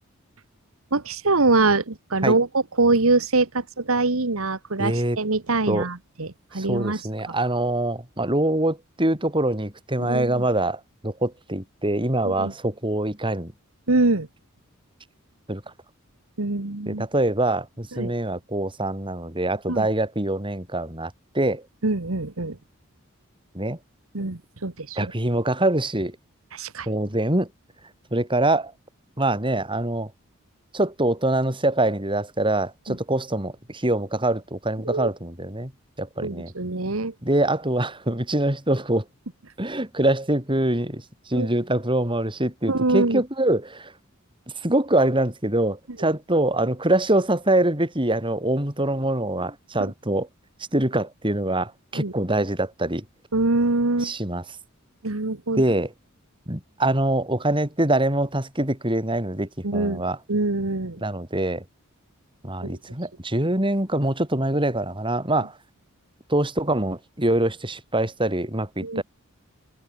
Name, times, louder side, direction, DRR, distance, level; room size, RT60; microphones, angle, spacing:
voice 1, 0.9-7.0 7.3-7.4 10.0-10.4 12.2-12.5 13.9-14.3 16.4-17.1 17.9-18.1 19.7-19.9 21.8-22.6 24.1-25.1 26.5-26.9 32.9-33.0 34.8-35.1 36.2-37.1 41.3-41.5 42.7-43.2 49.8-49.9 51.9-52.1 53.3-54.1 55.0-55.6 59.6-60.0 60.3-61.0 62.6-62.8 68.8-69.0, right 3 dB, 75° right, 1.7 m, -24 dB
voice 2, 4.8-5.2 5.7-5.9 6.5-13.5 15.5-15.6 16.9-21.6 23.5-23.8 25.0-26.2 26.9-27.5 28.1-28.7 29.2-30.1 30.7-35.7 36.0-36.5 37.2-39.0 39.6-43.9 44.6-50.3 50.7-53.0 54.0-54.4 55.5-55.9 56.5-60.2 61.0-61.6 62.4-65.6 66.3-69.0, right 1 dB, 25° right, 5.9 m, -24 dB
head